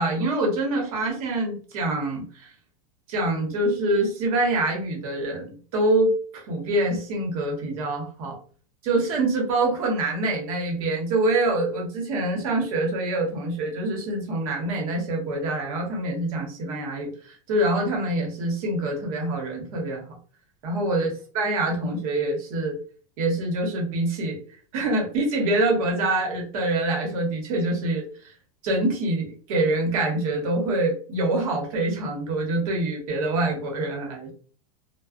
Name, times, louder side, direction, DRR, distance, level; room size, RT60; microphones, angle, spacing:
voice 1, 0.0-2.5 3.1-8.4 8.8-20.0 20.6-21.1 21.3-22.8 23.2-24.4 24.7-28.1 28.6-34.3, right 2 dB, 65° right, 0 dB, 1.1 m, -25 dB
2.3 x 2.2 x 2.4 m, 0.42 s
supercardioid pair, 155°, 20 cm